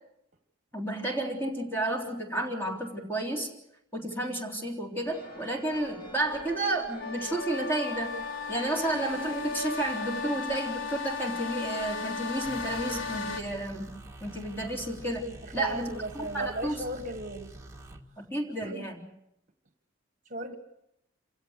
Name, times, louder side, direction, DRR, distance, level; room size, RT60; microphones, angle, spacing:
voice 1, 0.7-3.5 3.9-8.2 8.5-13.9 14.2-15.3 15.5-16.8 18.2-19.1, right 1 dB, 10° left, 0 dB, 3.5 m, -31 dB
sound 1, 5.0-10.4, left 1 dB, 45° left, 2.7 m, -45 dB
sound 2, 7.0-13.4, left 4 dB, 65° left, 3.1 m, -35 dB
sound 3, 12.4-18.0, right 2 dB, 15° right, 1.7 m, -47 dB
voice 2, 15.4-17.5 18.6-18.9 20.2-20.6, right 1 dB, 40° right, 7 dB, 1.5 m, -36 dB
27.5 x 16.5 x 8.2 m, 0.83 s
head